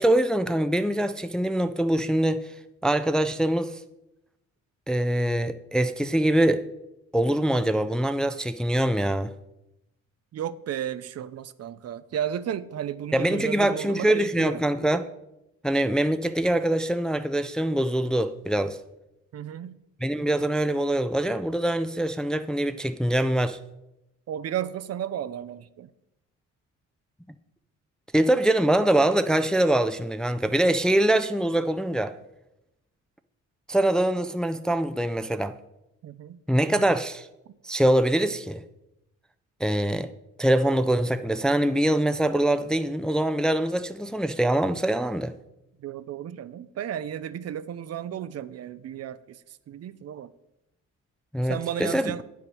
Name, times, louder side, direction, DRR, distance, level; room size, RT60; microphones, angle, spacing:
voice 1, 0.0-2.5 2.8-3.8 4.9-6.6 7.1-9.3 13.1-15.0 15.6-18.8 20.0-23.6 28.1-32.1 33.7-35.5 36.5-37.3 37.6-38.6 39.6-40.1 40.4-45.3 51.3-52.1, right 1 dB, 5° left, 0.4 m, -24 dB
voice 2, 10.3-14.6 19.3-19.8 24.3-25.9 36.0-36.4 37.5-37.6 45.8-50.3 51.4-52.2, right 10 dB, 55° right, 0.5 m, -33 dB
8.6 x 5.8 x 6.2 m
cardioid pair, 90°, 30 cm